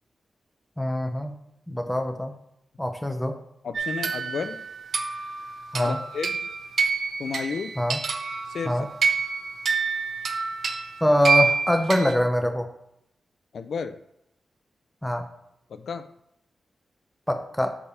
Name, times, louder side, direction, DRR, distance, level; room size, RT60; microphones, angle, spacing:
voice 1, 0.8-1.3 1.7-2.3 2.8-3.4 5.7-6.0 7.8-8.0 8.6-8.9 11.0-12.7 15.0-15.3 17.3-17.8, equal, 5° left, 6 dB, 0.7 m, -24 dB
voice 2, 3.6-4.7 5.8-6.4 7.2-7.7 8.5-8.9 13.5-14.0 15.7-16.1, left 5 dB, 75° left, 10 dB, 0.3 m, -32 dB
sound 1, 3.7-12.1, right 4 dB, 65° right, 0.5 m, -27 dB
7.0 x 3.3 x 4.9 m, 0.79 s
wide cardioid pair, 115°, 0 cm